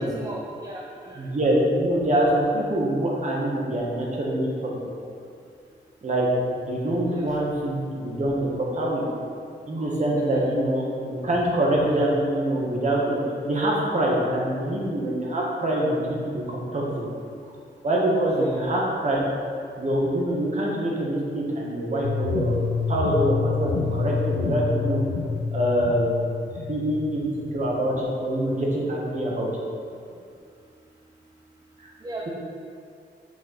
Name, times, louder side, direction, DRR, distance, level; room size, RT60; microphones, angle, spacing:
voice 1, 0.0-1.3 7.1-7.4 10.1-10.4 18.4-18.5 32.0-32.3, right 2 dB, 20° right, -3 dB, 0.6 m, -37 dB
voice 2, 1.1-4.8 6.0-6.3 6.5-9.0 9.7-17.0 17.8-19.3 19.8-22.6 22.9-25.0 25.5-26.3 26.7-27.3 27.5-29.5 31.8-31.9, right 1 dB, 40° right, -3 dB, 1.5 m, -25 dB
sound 1, 22.0-28.0, left 5 dB, 85° left, 0.6 m, -28 dB
6.4 x 4.6 x 5.8 m, 2.4 s
wide cardioid pair, 150°, 19 cm